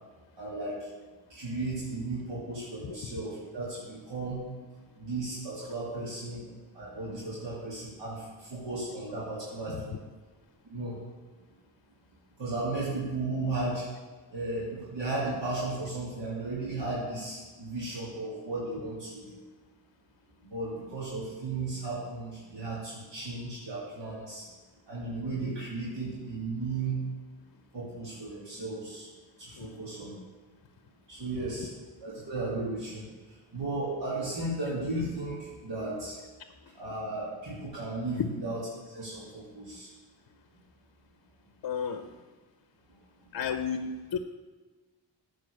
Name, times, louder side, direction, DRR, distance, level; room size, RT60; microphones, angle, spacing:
voice 1, 0.4-0.8 1.3-4.5 5.0-6.4 6.7-9.9 10.7-10.9 12.4-13.9 14.3-19.4 20.4-24.4 24.9-27.1 27.7-29.1 29.4-30.1 31.1-31.7 32.0-33.0 33.5-36.2 36.7-38.6 38.9-39.9, right 2 dB, 70° right, -9 dB, 2.8 m, -35 dB
voice 2, 2.8-3.2 9.7-9.8 29.5-29.8 38.2-38.3 41.6-42.1 43.3-44.2, left 7 dB, 55° left, 9 dB, 0.7 m, -33 dB
9.9 x 4.9 x 6.5 m, 1.3 s
cardioid pair, 60°, 44 cm